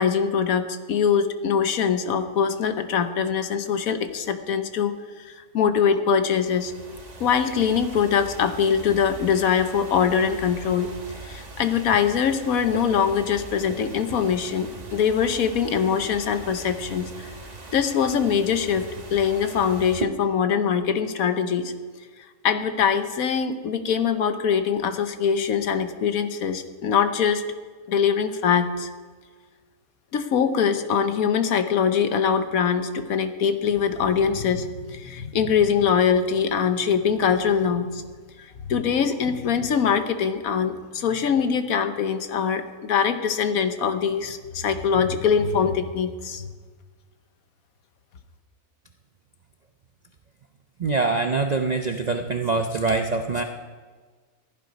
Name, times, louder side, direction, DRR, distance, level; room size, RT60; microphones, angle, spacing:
voice 1, 0.0-4.9 5.2-6.7 7.2-10.9 11.2-17.3 17.7-21.7 22.4-27.5 27.9-28.9 30.1-38.0 38.4-46.5, left 7 dB, 70° left, 9 dB, 1.3 m, -23 dB
sound 1, 6.2-20.0, right 2 dB, 30° right, 1.2 m, -40 dB
voice 2, 50.8-53.4, right 3 dB, 55° right, 6 dB, 0.4 m, -24 dB
15.5 x 11.0 x 5.2 m, 1.5 s
omnidirectional pair, 1.6 m